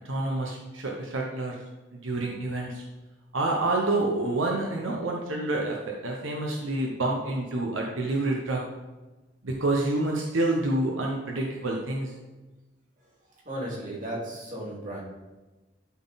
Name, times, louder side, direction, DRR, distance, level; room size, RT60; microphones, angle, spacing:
voice 1, 0.0-1.6 1.9-2.8 3.3-8.6 9.4-12.1, right 2 dB, 85° right, -1 dB, 1.0 m, -28 dB
voice 2, 13.4-15.0, right 1 dB, 40° right, -4 dB, 2.6 m, -35 dB
12.0 x 4.1 x 4.1 m, 1.1 s
head